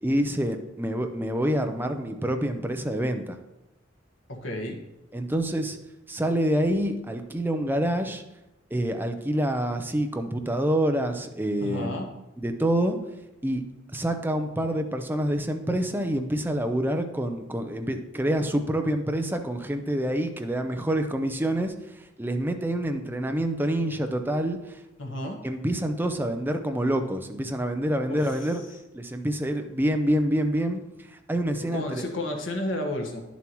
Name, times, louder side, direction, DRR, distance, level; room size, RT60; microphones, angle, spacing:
voice 1, 0.0-3.4 5.1-5.8 6.1-8.2 8.7-12.0 12.4-13.0 13.4-13.6 13.9-21.7 22.2-24.8 25.4-28.6 28.9-32.0, right 1 dB, 10° right, 6 dB, 0.6 m, -27 dB
voice 2, 4.3-4.8 11.6-12.1 25.0-25.4 28.1-28.3 31.6-33.2, left 1 dB, 70° left, 2 dB, 1.5 m, -31 dB
10.5 x 7.1 x 3.0 m, 0.96 s
head